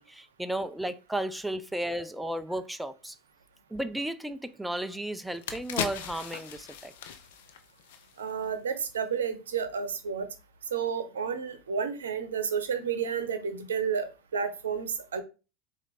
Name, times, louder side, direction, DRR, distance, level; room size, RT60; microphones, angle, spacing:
voice 1, 0.0-3.2 3.7-6.9, right 1 dB, 5° right, 0.4 m, -34 dB
sound 1, 4.8-4.9 5.2-8.5 8.8-9.0, left 9 dB, 70° left, 0.6 m, -38 dB
voice 2, 8.2-10.3 10.7-15.2, right 6 dB, 80° right, 0.7 m, -31 dB
4.2 x 2.6 x 4.2 m
hypercardioid pair, 85°, 0 cm